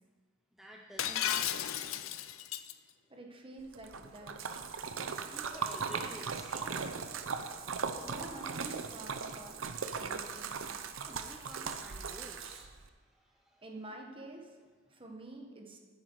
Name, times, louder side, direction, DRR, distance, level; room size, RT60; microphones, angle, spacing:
voice 1, 0.5-1.9 5.3-6.9 11.1-13.6, equal, ahead, -1 dB, 0.6 m, -51 dB
Shatter, 1.0-2.7, left 10 dB, 70° left, 0.5 m, -34 dB
voice 2, 3.1-4.5 8.0-10.6 13.6-14.6 14.9-15.8, right 2 dB, 25° right, 2 dB, 1.3 m, -48 dB
Splash splatter, 3.7-12.9, right 5 dB, 70° right, 0.7 m, -38 dB
10.5 x 9.4 x 4.7 m, 1.5 s
head